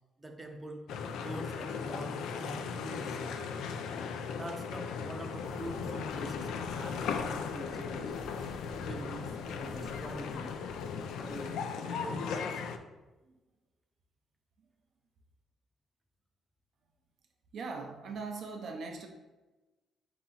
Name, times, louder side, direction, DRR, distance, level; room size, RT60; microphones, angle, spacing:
voice 1, 0.2-0.9 1.2-3.4 4.3-8.2 8.8-10.5 11.2-12.6, right 1 dB, 15° right, 4 dB, 0.6 m, -44 dB
sound 1, 0.9-12.8, left 6 dB, 85° left, 0.3 m, -37 dB
sound 2, 5.4-11.5, left 2 dB, 65° left, 1.1 m, -54 dB
voice 2, 17.5-19.1, right 4 dB, 65° right, 2 dB, 0.5 m, -40 dB
4.0 x 2.9 x 3.8 m, 1.1 s
cardioid pair, 90°, 0 cm